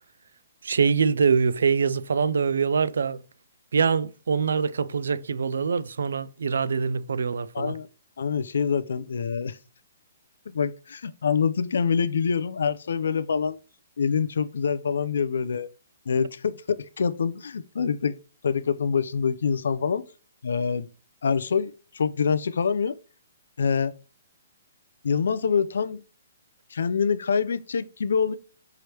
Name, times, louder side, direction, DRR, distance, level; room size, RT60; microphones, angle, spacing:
voice 1, 0.6-3.2 3.7-7.8, right 5 dB, 85° right, 0.3 m, -24 dB
voice 2, 7.5-7.9 8.2-9.6 10.5-13.6 14.0-15.7 16.1-18.2 18.4-20.0 20.4-20.9 21.2-23.0 23.6-24.0 25.0-26.0 26.7-28.3, left 6 dB, 80° left, 0.4 m, -25 dB
4.8 x 3.1 x 2.9 m
hypercardioid pair, 170°, 0 cm